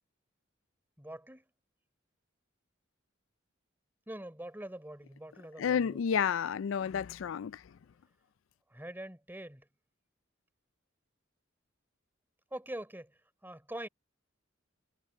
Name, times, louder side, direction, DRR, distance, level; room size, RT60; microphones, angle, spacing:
voice 1, 1.0-1.5 4.1-6.0 8.7-9.7 12.5-13.9, right 1 dB, 10° right, 4.2 m, -44 dB
voice 2, 5.6-7.6, left 7 dB, 70° left, 0.4 m, -30 dB
head